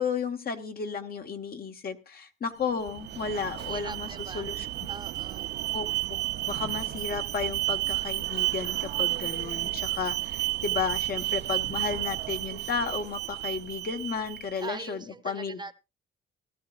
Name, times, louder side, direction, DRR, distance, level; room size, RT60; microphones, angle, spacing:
voice 1, 0.0-4.1 4.3-4.7 5.7-15.8, left 5 dB, 50° left, 1.3 m, -33 dB
Alarm, 2.6-14.7, right 17 dB, 60° right, 0.7 m, -32 dB
voice 2, 3.6-4.5 4.9-5.5 14.6-15.8, right 3 dB, 20° right, 0.9 m, -41 dB
18.0 x 12.5 x 2.4 m
cardioid pair, 90°, 20 cm